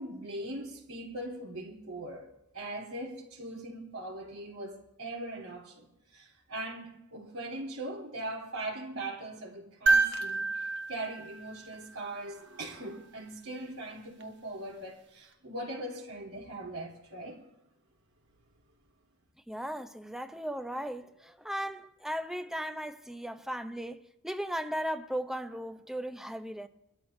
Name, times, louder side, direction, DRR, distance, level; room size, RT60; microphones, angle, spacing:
voice 1, 0.0-17.4, right 1 dB, 90° right, 3.5 m, -40 dB
sound 1, 9.9-12.2 14.2-14.3, right 3 dB, 55° right, 1.2 m, -29 dB
voice 2, 19.5-26.7, equal, ahead, 0.7 m, -37 dB
22.5 x 12.5 x 2.7 m
head